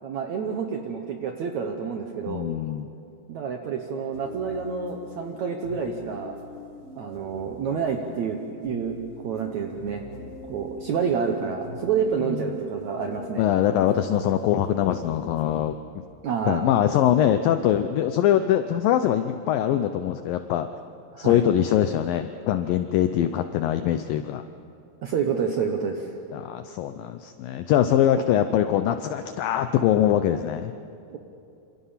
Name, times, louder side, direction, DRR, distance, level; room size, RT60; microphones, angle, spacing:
voice 1, 0.0-2.5 3.3-6.3 7.0-9.0 9.2-10.0 10.5-13.5 16.2-16.7 21.1-21.4 25.0-26.1 31.1-31.2, right 6 dB, 70° right, 3 dB, 1.7 m, -28 dB
voice 2, 2.3-2.9 12.2-12.4 13.4-15.8 16.4-20.7 21.2-24.4 26.3-30.7, left 11 dB, 85° left, 9 dB, 2.0 m, -23 dB
sound 1, 4.1-15.6, left 2 dB, 70° left, 4.8 m, -43 dB
27.0 x 26.5 x 5.7 m, 2.6 s
omnidirectional pair, 4.8 m